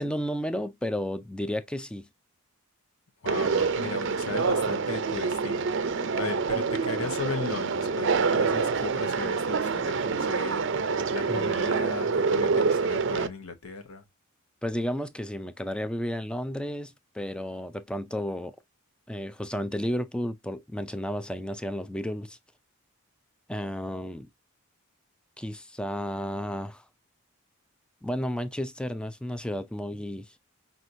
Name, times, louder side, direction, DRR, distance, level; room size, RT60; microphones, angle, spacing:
voice 1, 0.0-2.1 11.3-11.5 14.6-18.6 19.1-22.4 23.5-24.3 25.4-26.8 28.0-30.4, equal, 5° left, 0.4 m, -32 dB
voice 2, 3.2-14.0, left 4 dB, 80° left, 1.0 m, -37 dB
Conversation, 3.3-13.3, right 5 dB, 55° right, 0.5 m, -26 dB
5.9 x 2.6 x 2.6 m
head